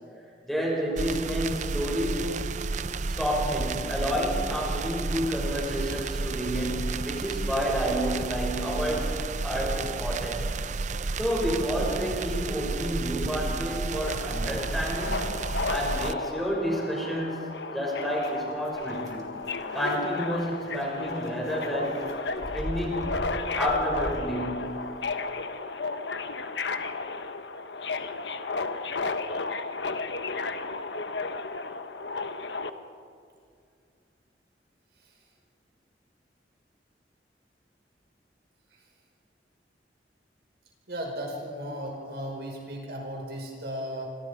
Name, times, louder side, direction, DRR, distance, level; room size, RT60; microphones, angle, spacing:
voice 1, 0.4-2.4 3.1-9.2 9.4-10.4 11.2-15.3 15.7-19.4 19.7-22.1 22.5-23.2 23.5-24.8, equal, ahead, -3 dB, 6.3 m, -30 dB
sound 1, 1.0-16.1, right 3 dB, 45° right, 0.6 m, -32 dB
Subway metro underground, 13.9-32.7, left 3 dB, 85° left, 1.2 m, -33 dB
sound 2, 18.0-24.2, equal, 20° right, 3.4 m, -41 dB
voice 2, 40.9-44.2, equal, 65° right, 0 dB, 5.4 m, -35 dB
28.0 x 25.5 x 5.0 m, 2.2 s
head